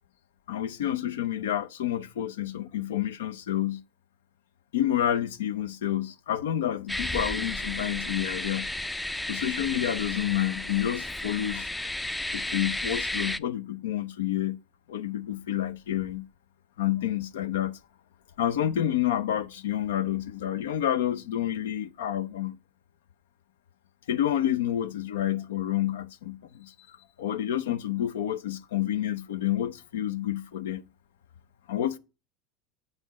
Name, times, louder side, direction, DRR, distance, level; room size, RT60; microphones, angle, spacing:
voice 1, 0.5-3.8 4.7-8.7 9.3-11.7 12.3-14.6 14.9-16.3 16.8-17.8 18.4-22.6 24.1-30.8 31.7-32.0, left 11 dB, 85° left, 0.5 m, -29 dB
sound 1, 6.9-13.4, left 1 dB, 10° left, 0.4 m, -33 dB
7.3 x 5.1 x 4.1 m
supercardioid pair, 100°, 0 cm